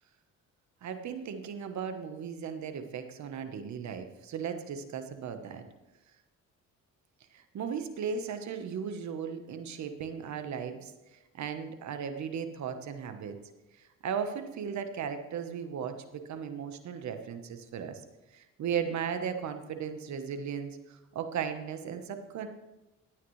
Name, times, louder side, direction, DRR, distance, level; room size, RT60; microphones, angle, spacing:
voice 1, 0.8-5.6 7.3-10.9 11.3-13.4 14.0-18.0 18.3-22.5, right 7 dB, 65° right, 8 dB, 1.2 m, -36 dB
16.0 x 9.1 x 3.2 m, 1.0 s
cardioid pair, 90°, 30 cm